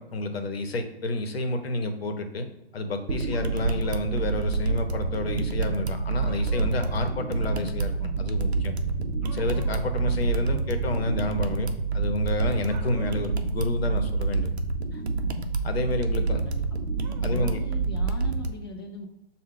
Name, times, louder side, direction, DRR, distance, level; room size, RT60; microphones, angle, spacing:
voice 1, 0.0-2.5 2.7-8.7 9.3-14.5 14.9-15.0 15.6-16.4 17.2-17.6, left 2 dB, 70° left, 7 dB, 0.8 m, -29 dB
sound 1, 3.1-18.5, right 4 dB, 85° right, 0.6 m, -28 dB
sound 2, 3.3-4.1 6.2-7.1 9.2-9.9 12.6-13.4 17.0-17.6, right 6 dB, 40° right, 0.5 m, -47 dB
sound 3, 5.1-13.4, right 1 dB, 50° left, 1.1 m, -41 dB
voice 2, 16.2-16.6 17.2-19.1, left 2 dB, 25° left, 3 dB, 0.4 m, -40 dB
6.2 x 2.2 x 3.7 m, 0.84 s
figure-of-eight pair, 140°, 32 cm